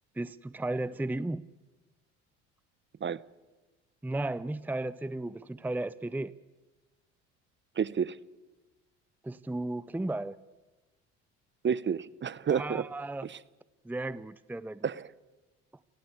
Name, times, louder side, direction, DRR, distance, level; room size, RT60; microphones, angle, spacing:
voice 1, 0.2-1.5 4.0-6.3 9.2-10.4 12.5-13.3 13.8-14.9, right 2 dB, 5° right, 0.7 m, -34 dB
voice 2, 7.8-8.2 11.6-12.8 13.2-13.4 14.8-15.1, right 7 dB, 35° right, 0.9 m, -30 dB
29.5 x 17.0 x 8.3 m
hypercardioid pair, 65°, 35 cm